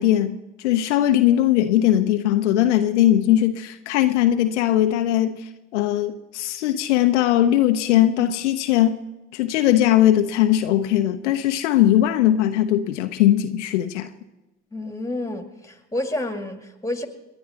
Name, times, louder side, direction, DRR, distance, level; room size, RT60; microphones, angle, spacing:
voice 1, 0.0-9.0 9.3-14.1, left 12 dB, 70° left, 0.8 m, -19 dB
voice 2, 14.7-17.1, left 1 dB, 10° left, 2.1 m, -29 dB
28.5 x 10.5 x 4.1 m
figure-of-eight pair, 50°, 36 cm